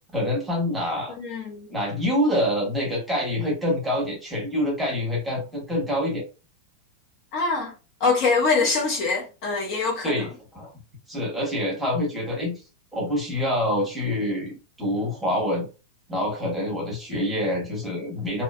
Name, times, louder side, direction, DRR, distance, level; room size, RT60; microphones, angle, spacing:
voice 1, 0.1-1.1 1.7-6.2 10.0-10.7 11.1-12.6 12.9-15.7 16.1-18.4, left 1 dB, 5° right, 0.9 m, -26 dB
voice 2, 1.1-1.7 7.3-7.7 8.0-10.3, left 4 dB, 35° left, 0.5 m, -24 dB
2.5 x 2.2 x 2.3 m
supercardioid pair, 170°, 0 cm